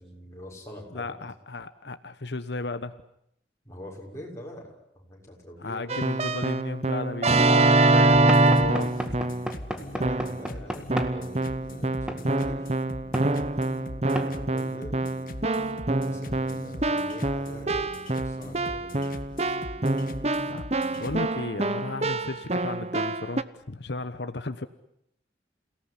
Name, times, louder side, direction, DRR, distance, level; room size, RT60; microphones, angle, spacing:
voice 1, 0.0-1.3 3.6-5.9 9.7-12.7 14.2-15.1 16.0-19.1, equal, 15° left, -1 dB, 6.4 m, -44 dB
voice 2, 0.9-3.0 5.6-8.9 20.4-20.7 20.9-24.7, left 2 dB, 75° left, 11 dB, 1.1 m, -34 dB
Keyboard (musical), 5.9-9.5 10.0-10.5 10.9-23.4, right 2 dB, 35° right, 1.0 m, -25 dB
sound 1, 8.1-21.3, left 1 dB, 50° left, 1.6 m, -41 dB
Knock / Wood, 8.3-11.2 12.1-12.3 13.1-13.3 14.1-14.3, equal, 5° right, 1.9 m, -33 dB
29.0 x 18.0 x 10.0 m, 0.75 s
head